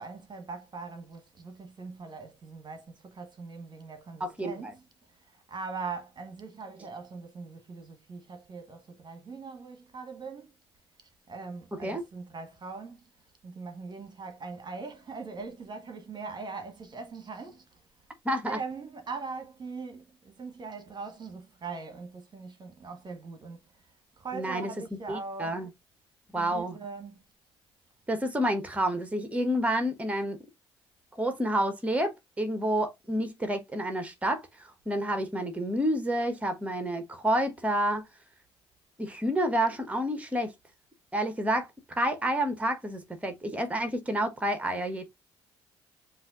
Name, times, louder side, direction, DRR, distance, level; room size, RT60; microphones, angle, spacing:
voice 1, 0.0-10.6 11.3-13.0 13.4-17.8 18.3-23.8 24.2-25.6 26.3-27.2, right 4 dB, 35° right, 1.3 m, -41 dB
voice 2, 4.2-4.5 11.8-12.0 18.2-18.6 24.3-24.7 25.1-25.7 26.3-26.7 28.1-30.4 31.1-38.1 39.0-40.5 41.1-45.0, right 1 dB, 10° right, 1.2 m, -29 dB
7.7 x 2.6 x 2.5 m
figure-of-eight pair, 45°, 13 cm